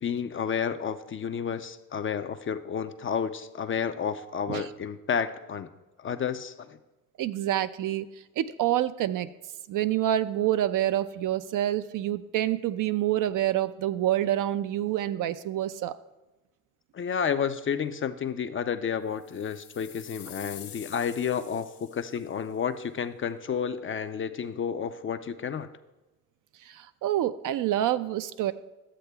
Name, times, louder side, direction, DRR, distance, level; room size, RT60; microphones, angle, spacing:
voice 1, 0.0-5.7 6.0-6.8 16.9-25.7, left 7 dB, 30° left, 10 dB, 0.4 m, -31 dB
voice 2, 7.2-8.1 8.4-9.3 9.7-16.0 26.7-28.5, right 12 dB, 50° right, 12 dB, 0.4 m, -27 dB
sound 1, 19.2-22.4, left 10 dB, 65° left, 1.4 m, -47 dB
12.5 x 7.8 x 2.3 m, 1.1 s
hypercardioid pair, 55°, 44 cm